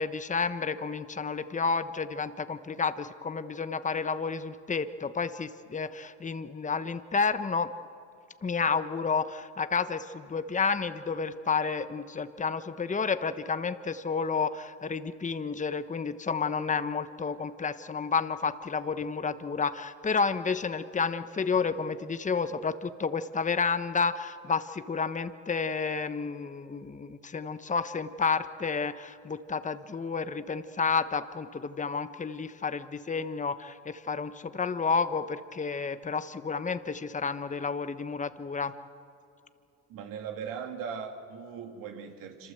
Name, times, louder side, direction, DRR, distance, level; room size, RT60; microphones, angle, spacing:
voice 1, 0.0-7.7 8.4-38.7, left 5 dB, 20° left, 11 dB, 1.1 m, -30 dB
voice 2, 39.9-42.5, right 6 dB, 75° right, 4 dB, 3.1 m, -39 dB
26.5 x 25.5 x 8.0 m, 2.6 s
supercardioid pair, 85°, 34 cm